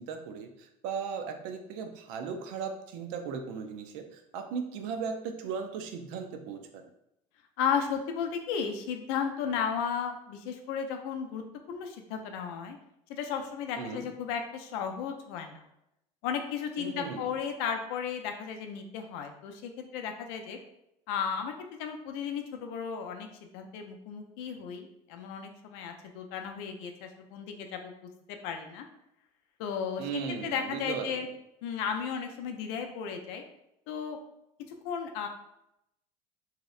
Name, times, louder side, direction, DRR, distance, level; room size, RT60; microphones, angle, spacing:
voice 1, 0.0-6.9 13.8-14.1 16.8-17.3 30.0-31.3, right 6 dB, 75° right, 6 dB, 0.4 m, -37 dB
voice 2, 7.6-12.8 13.1-15.6 16.2-20.6 21.1-23.3 23.5-27.9 28.3-28.8 29.6-31.3 31.6-33.4 33.9-34.2 34.8-35.3, left 7 dB, 85° left, 4 dB, 0.4 m, -34 dB
2.7 x 2.0 x 2.3 m, 0.83 s
supercardioid pair, 110°, 14 cm